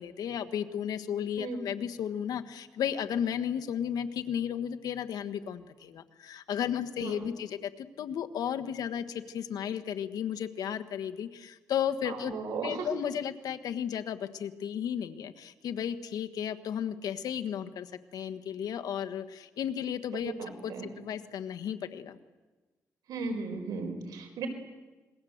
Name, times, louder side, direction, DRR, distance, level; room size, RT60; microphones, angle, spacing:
voice 1, 0.0-12.3 12.6-17.9 18.1-20.3 20.6-20.7 21.0-22.2, left 9 dB, 85° left, 8 dB, 1.5 m, -34 dB
voice 2, 7.0-7.3 12.0-12.9 20.2-20.9 23.1-24.5, right 4 dB, 90° right, 4 dB, 4.8 m, -36 dB
27.5 x 21.5 x 8.0 m, 1.2 s
cardioid pair, 95°, 6 cm